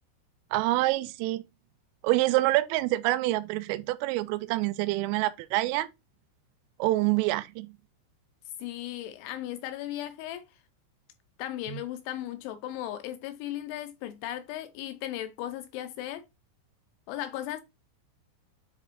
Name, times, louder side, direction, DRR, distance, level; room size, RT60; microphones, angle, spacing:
voice 1, 0.5-1.4 2.0-5.9 6.8-7.8, right 18 dB, 90° right, 3.2 m, -26 dB
voice 2, 8.6-10.5 11.4-16.2 17.1-17.6, left 13 dB, 80° left, 2.8 m, -36 dB
9.9 x 3.6 x 3.0 m
omnidirectional pair, 5.7 m